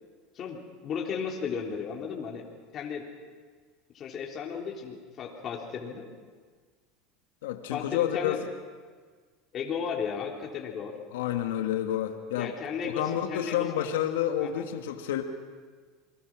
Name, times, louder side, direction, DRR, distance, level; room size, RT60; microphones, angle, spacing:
voice 1, 0.3-2.4 2.7-3.1 3.9-6.1 7.7-8.4 9.5-10.9 12.4-13.9 14.4-14.6, left 6 dB, 40° left, -1 dB, 3.6 m, -35 dB
voice 2, 7.4-8.4 11.1-12.5 12.8-15.2, left 11 dB, 90° left, 5 dB, 1.7 m, -29 dB
28.0 x 21.0 x 6.1 m, 1.5 s
supercardioid pair, 115°, 0 cm